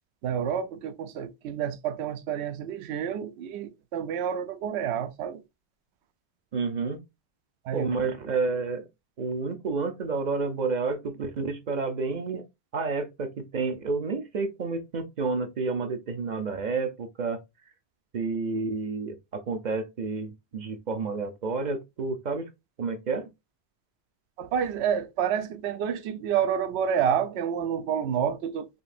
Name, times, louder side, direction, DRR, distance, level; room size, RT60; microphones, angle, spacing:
voice 1, 0.2-5.4 7.6-7.9 24.4-28.7, right 8 dB, 80° right, 0.8 m, -29 dB
voice 2, 6.5-7.0 7.7-8.9 9.2-12.4 12.7-17.4 18.1-22.5 22.8-23.3, right 4 dB, 50° right, 0.6 m, -30 dB
5.2 x 2.7 x 2.5 m
omnidirectional pair, 1.1 m